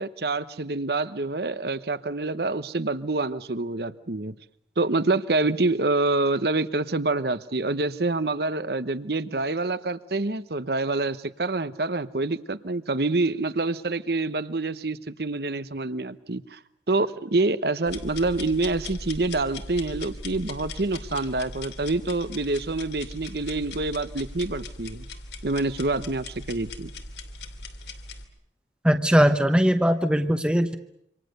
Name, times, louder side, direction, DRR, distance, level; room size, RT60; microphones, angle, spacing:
voice 1, 0.0-4.3 4.8-16.6 16.9-25.1 25.4-26.9, right 2 dB, 60° right, 14 dB, 1.0 m, -26 dB
sound 1, 17.9-28.2, left 2 dB, 70° left, 2.7 m, -39 dB
voice 2, 28.8-30.8, equal, 5° right, 7 dB, 1.0 m, -20 dB
27.5 x 25.5 x 6.7 m, 0.75 s
head